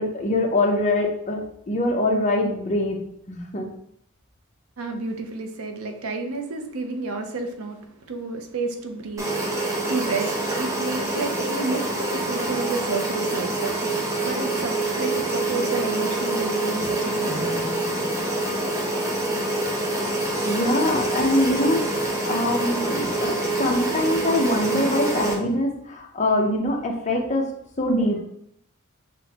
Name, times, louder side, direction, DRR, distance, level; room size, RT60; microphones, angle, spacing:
voice 1, 0.0-1.4 1.7-3.7 20.4-27.5 27.8-28.2, left 1 dB, 35° left, 1 dB, 0.7 m, -23 dB
voice 2, 4.8-13.8 14.2-17.6, right 3 dB, 75° right, 5 dB, 0.6 m, -31 dB
sound 1, 9.2-25.3, right 2 dB, 15° right, 0.7 m, -26 dB
6.0 x 2.2 x 2.9 m, 0.72 s
head